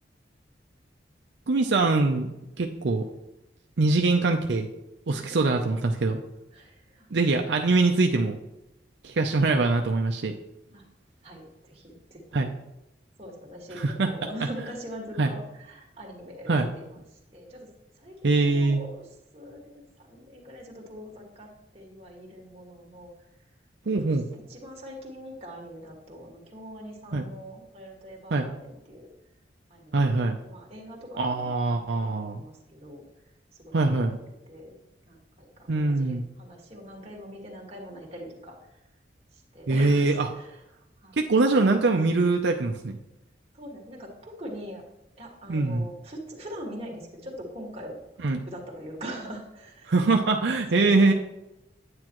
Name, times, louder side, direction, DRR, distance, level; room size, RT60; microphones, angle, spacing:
voice 1, 1.5-2.3 2.6-3.0 3.8-4.7 5.1-6.2 7.1-8.4 9.0-10.3 12.3-12.5 13.7-14.1 15.2-15.3 16.5-16.7 18.2-18.8 23.9-24.3 27.1-27.3 28.3-28.5 29.9-30.4 31.2-32.4 33.7-34.2 35.7-36.2 39.7-40.3 41.1-43.0 45.5-45.9 48.2-48.4 49.9-51.1, right 3 dB, 75° right, 3 dB, 0.6 m, -23 dB
voice 2, 6.5-7.1 10.7-10.8 11.2-12.5 13.2-17.0 17.3-17.7 17.9-19.0 19.3-23.1 23.8-24.2 24.5-29.1 29.7-32.1 32.3-33.1 33.6-34.0 34.5-34.7 35.1-38.6 39.3-40.6 41.0-41.2 43.5-44.8 45.2-48.0 48.5-49.9 50.3-51.1, equal, 35° right, -2 dB, 1.9 m, -42 dB
9.5 x 8.7 x 3.0 m, 0.93 s
head